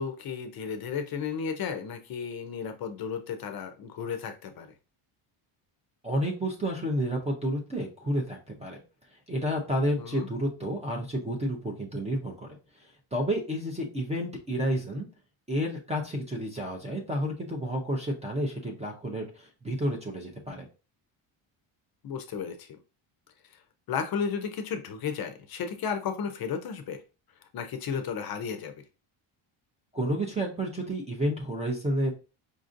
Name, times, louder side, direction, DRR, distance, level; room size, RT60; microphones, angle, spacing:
voice 1, 0.0-4.7 10.0-10.3 22.0-22.8 23.9-27.0 27.5-28.7, left 6 dB, 50° left, 7 dB, 0.5 m, -33 dB
voice 2, 6.0-8.8 9.3-12.5 13.1-15.0 15.5-20.7 29.9-32.1, equal, 15° right, 1 dB, 0.4 m, -30 dB
5.1 x 2.5 x 2.5 m, 0.32 s
cardioid pair, 180°, 50 cm